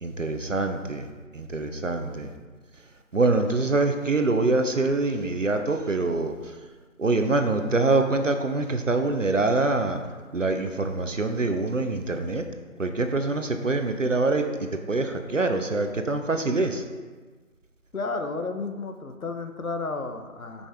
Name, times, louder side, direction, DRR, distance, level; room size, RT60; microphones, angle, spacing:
voice 1, 0.0-1.1 1.3-2.3 3.1-6.3 7.0-10.0 10.3-12.4 12.8-16.8, right 2 dB, 60° right, 6 dB, 0.7 m, -25 dB
voice 2, 17.9-20.7, left 3 dB, 75° left, 6 dB, 1.0 m, -32 dB
7.3 x 5.4 x 3.5 m, 1.4 s
figure-of-eight pair, 180°, 43 cm